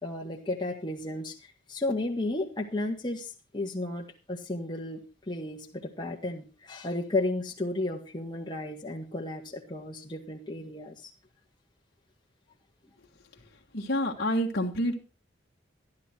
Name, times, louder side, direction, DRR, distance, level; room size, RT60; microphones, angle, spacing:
voice 1, 0.0-1.4 1.7-5.0 5.3-11.1 14.2-14.3, left 2 dB, 25° left, -1 dB, 1.7 m, -33 dB
voice 2, 13.7-14.9, equal, 55° left, 0 dB, 1.5 m, -28 dB
13.0 x 11.5 x 4.4 m, 0.32 s
head